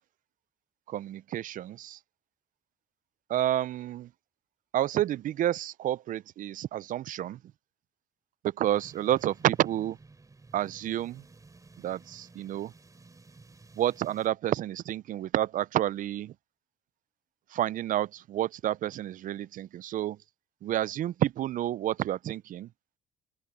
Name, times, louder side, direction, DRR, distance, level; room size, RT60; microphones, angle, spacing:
voice 1, 0.9-2.0 3.3-4.1 4.7-7.4 8.4-10.0 10.5-11.2 11.8-12.7 13.8-16.3 17.5-20.2 20.6-22.7, right 12 dB, 50° right, 0.4 m, -29 dB
sound 1, 8.7-14.3, right 3 dB, 20° right, 4.4 m, -54 dB
open air
cardioid pair, 110°, 17 cm